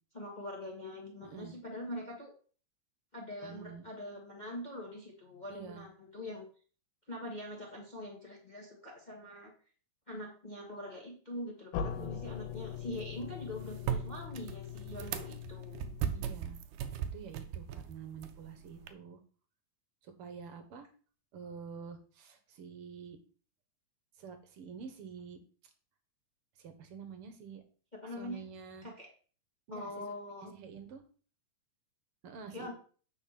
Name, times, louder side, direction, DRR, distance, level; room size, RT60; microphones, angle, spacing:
voice 1, 0.1-2.3 3.1-6.5 7.1-9.5 10.1-15.8 28.0-28.4 28.8-29.1 29.7-30.5 32.5-32.7, left 1 dB, 50° left, -1 dB, 0.5 m, -43 dB
voice 2, 1.2-1.5 3.4-3.9 5.5-5.9 11.8-12.2 16.1-16.6 17.1-19.2 20.0-20.9 21.3-23.2 24.2-25.4 26.6-27.6 28.2-28.9 29.7-29.9 30.5-31.0 32.2-32.7, right 6 dB, 60° right, 7 dB, 1.6 m, -47 dB
sound 1, 11.7-16.5, left 8 dB, 85° left, 2.4 m, -42 dB
sound 2, 11.9-18.9, right 8 dB, 85° right, 2.3 m, -40 dB
9.0 x 4.4 x 5.8 m, 0.41 s
omnidirectional pair, 3.7 m